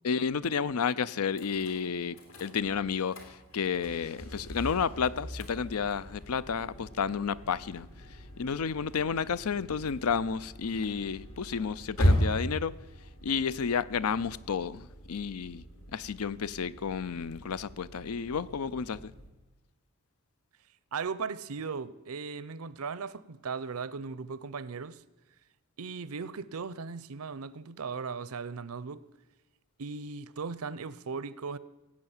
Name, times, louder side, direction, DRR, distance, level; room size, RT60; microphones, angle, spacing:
voice 1, 0.0-7.9 8.4-12.7 13.2-15.6 15.9-19.1, left 6 dB, 85° left, 0.5 m, -31 dB
sound 1, 1.3-19.3, equal, 70° left, 3.0 m, -37 dB
voice 2, 20.9-25.0 25.8-29.1 29.8-31.6, right 5 dB, 85° right, 0.6 m, -37 dB
16.5 x 8.6 x 7.2 m
head